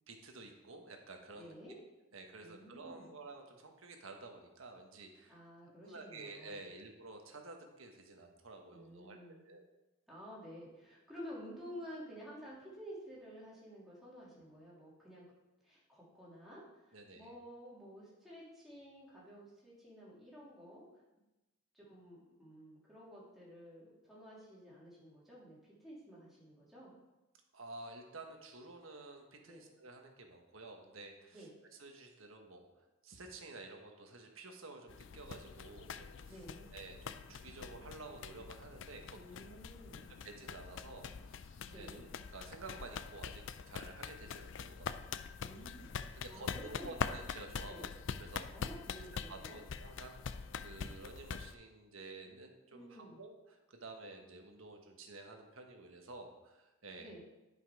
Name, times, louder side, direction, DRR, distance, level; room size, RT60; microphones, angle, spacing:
voice 1, 0.1-1.5 2.1-5.4 5.8-9.2 9.4-9.6 16.9-17.3 27.5-31.5 31.8-36.4 36.7-39.6 40.2-45.1 46.1-47.9 48.2-48.5 49.3-57.1, right 3 dB, 75° right, 3 dB, 1.4 m, -51 dB
voice 2, 1.3-1.8 2.4-3.2 5.3-6.7 8.7-9.5 10.1-15.2 15.6-20.9 21.7-26.9 29.4-29.7 31.3-31.5 36.3-36.7 39.1-40.1 41.7-41.9 45.4-47.0 47.7-47.9 48.5-49.6 52.7-53.2 57.0-57.2, equal, ahead, -8 dB, 3.0 m, -52 dB
sound 1, 34.9-51.5, left 6 dB, 60° left, 0.4 m, -44 dB
10.5 x 5.7 x 4.8 m, 1.0 s
head